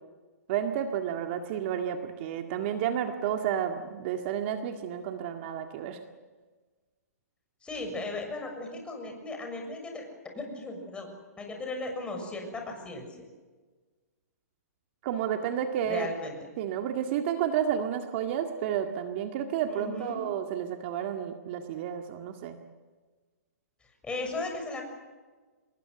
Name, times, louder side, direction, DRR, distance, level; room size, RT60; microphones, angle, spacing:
voice 1, 0.5-6.0 15.0-16.1 16.6-22.6, right 9 dB, 45° right, 5 dB, 2.0 m, -31 dB
voice 2, 7.6-10.1 10.3-11.1 11.4-13.1 15.8-16.3 19.7-20.2 24.0-24.8, left 2 dB, 10° left, 3 dB, 6.8 m, -36 dB
26.5 x 22.0 x 8.0 m, 1.3 s
hypercardioid pair, 135°, 9 cm